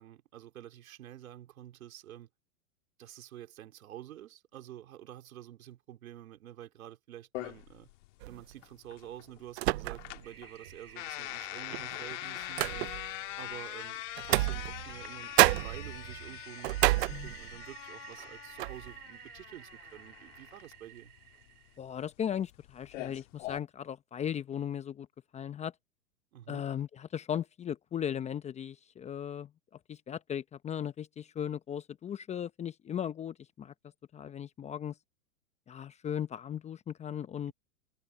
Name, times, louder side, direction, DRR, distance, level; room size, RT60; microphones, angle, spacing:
voice 1, 0.0-2.3 3.0-7.9 8.2-12.9 13.4-21.1 26.3-26.7, right 12 dB, 70° right, 2.9 m, -49 dB
sound 1, 7.3-23.6, left 18 dB, 55° left, 2.0 m, -43 dB
sound 2, 8.2-8.5 9.6-10.3 10.7-10.8 11.7-13.2 14.2-15.1 15.4-17.7 18.1-18.3 18.6-18.9, right 19 dB, 45° right, 0.6 m, -29 dB
Toilet flush, 10.2-21.8, right 7 dB, 85° right, 3.8 m, -52 dB
voice 2, 21.8-25.1 25.3-25.7 26.5-29.5 29.9-33.7 34.1-34.9 35.7-37.5, left 9 dB, 15° left, 0.8 m, -37 dB
hypercardioid pair, 120°, 44 cm